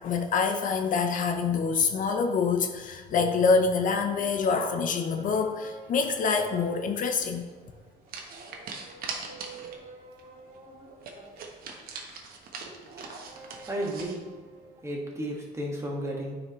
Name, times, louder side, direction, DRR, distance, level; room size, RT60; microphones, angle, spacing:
voice 1, 0.0-7.4, left 5 dB, 50° left, 6 dB, 0.6 m, -26 dB
sound 1, 3.8-14.9, right 3 dB, 45° right, 2.1 m, -50 dB
sound 2, 7.3-7.5 8.1-9.9 10.2-10.3 10.5-10.6 11.0-14.2, right 4 dB, 60° right, 1.1 m, -41 dB
voice 2, 13.3-14.2 14.8-16.3, right 1 dB, 15° right, -2 dB, 1.7 m, -33 dB
9.4 x 5.0 x 3.1 m, 1.4 s
cardioid pair, 110°, 17 cm